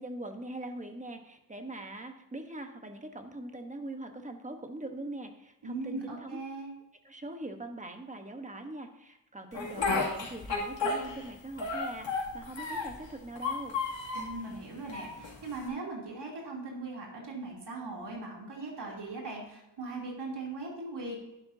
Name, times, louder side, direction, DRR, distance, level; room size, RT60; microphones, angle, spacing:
voice 1, 0.0-6.4 7.0-13.7, right 2 dB, 15° right, 5 dB, 1.1 m, -42 dB
voice 2, 5.6-6.7 14.1-21.2, right 3 dB, 60° right, -2 dB, 3.2 m, -39 dB
Speech, 9.5-11.3 11.6-13.0 13.4-14.3 14.9-15.7, left 4 dB, 70° left, 2.6 m, -32 dB
11.0 x 11.0 x 2.8 m, 0.90 s
wide cardioid pair, 115°, 45 cm